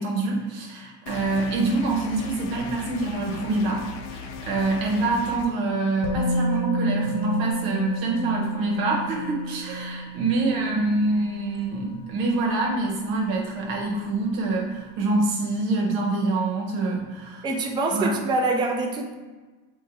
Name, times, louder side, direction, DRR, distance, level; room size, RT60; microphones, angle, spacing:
voice 1, 0.0-3.8 4.1-17.4 17.9-18.1, right 2 dB, 85° right, -1 dB, 1.0 m, -25 dB
sound 1, 1.1-5.5, left 5 dB, 80° left, 0.6 m, -38 dB
Musical instrument, 6.0-13.9 14.2-14.4, right 1 dB, 50° left, 0.8 m, -31 dB
voice 2, 17.4-19.1, right 2 dB, 10° right, 3 dB, 0.3 m, -25 dB
4.0 x 2.3 x 3.9 m, 1.3 s
supercardioid pair, 85°, 44 cm